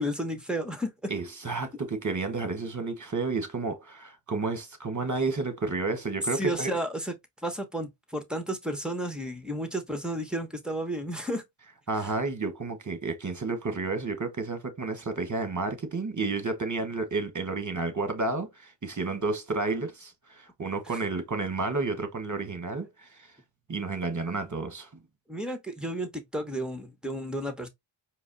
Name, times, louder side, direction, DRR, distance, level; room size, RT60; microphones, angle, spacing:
voice 1, 0.0-1.1 6.3-7.1 7.4-11.4 25.3-27.7, right 1 dB, ahead, 1.0 m, -32 dB
voice 2, 1.1-6.7 11.9-23.3 23.7-24.9, right 3 dB, 35° right, 1.1 m, -31 dB
4.8 x 2.0 x 3.9 m
wide cardioid pair, 45°, 50 cm